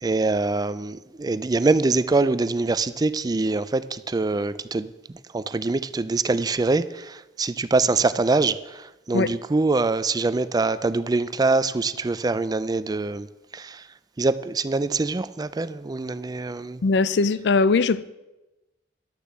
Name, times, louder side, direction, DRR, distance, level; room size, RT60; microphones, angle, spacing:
voice 1, 0.0-4.9 5.3-13.3 13.5-13.9 14.2-16.8, right 3 dB, 20° right, 0.4 m, -24 dB
voice 2, 16.8-18.1, left 4 dB, 65° left, 0.4 m, -20 dB
11.5 x 6.7 x 7.4 m
head